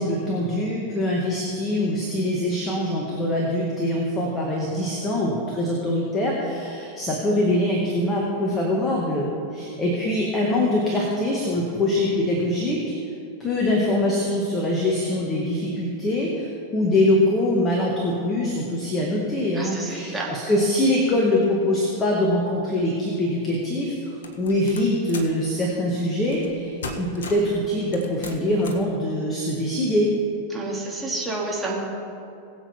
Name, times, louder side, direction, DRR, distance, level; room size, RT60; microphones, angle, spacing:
voice 1, 0.0-12.9 13.4-30.1, left 1 dB, 20° left, -2 dB, 2.0 m, -23 dB
voice 2, 19.5-20.3 30.5-31.8, right 2 dB, 10° right, -4 dB, 2.8 m, -30 dB
sound 1, 24.2-25.4 26.3-26.6 26.8-27.5 27.9-28.9, left 3 dB, 65° left, 1.3 m, -37 dB
21.0 x 7.8 x 3.7 m, 2.6 s
figure-of-eight pair, 90°, 0 cm